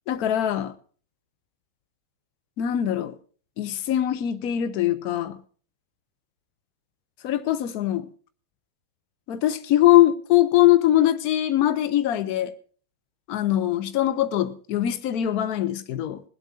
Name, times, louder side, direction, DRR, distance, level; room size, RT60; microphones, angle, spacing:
voice 1, 0.1-0.7 2.6-3.2 3.6-5.4 7.2-8.1 9.3-12.5 13.3-16.2, left 13 dB, 45° left, 9 dB, 1.0 m, -22 dB
19.5 x 8.4 x 5.7 m, 0.42 s
figure-of-eight pair, 90°, 0 cm